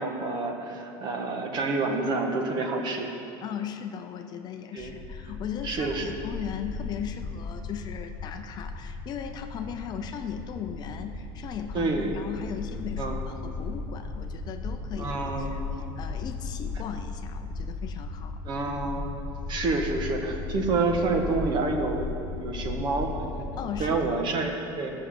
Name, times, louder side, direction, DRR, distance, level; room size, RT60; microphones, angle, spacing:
voice 1, 0.0-3.2 4.7-4.9 5.6-6.1 11.7-12.1 13.0-13.2 15.0-15.9 18.4-19.1 19.5-22.1 22.4-23.1 23.8-24.9, right 3 dB, 40° right, 3 dB, 1.5 m, -28 dB
voice 2, 3.4-15.6 16.0-18.4 23.6-24.2, left 8 dB, 35° left, 6 dB, 0.6 m, -37 dB
sound 1, 4.8-24.1, left 3 dB, 10° left, 1.4 m, -36 dB
13.5 x 6.6 x 7.8 m, 2.7 s
cardioid pair, 150°, 12 cm